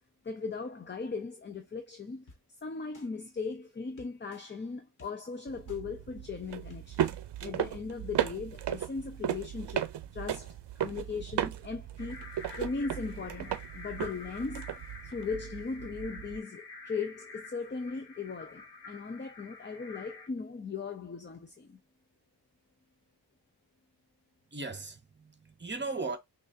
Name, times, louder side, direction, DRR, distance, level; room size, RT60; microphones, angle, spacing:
voice 1, 0.2-2.3 2.6-9.9 10.1-14.7 15.0-21.8, left 4 dB, 30° left, 0.5 m, -38 dB
sound 1, 2.3-2.4 2.9-3.1 4.0-4.4 5.0-5.1 5.7-5.8 6.4-6.5 6.7-7.2 7.6-7.7, left 2 dB, 50° left, 1.4 m, -54 dB
sound 2, 5.5-16.4, right 11 dB, 80° right, 0.6 m, -36 dB
sound 3, 12.0-20.3, left 3 dB, 75° left, 1.2 m, -48 dB
voice 2, 24.5-26.2, right 3 dB, 25° right, 0.8 m, -37 dB
6.1 x 2.5 x 2.6 m
wide cardioid pair, 170°, 41 cm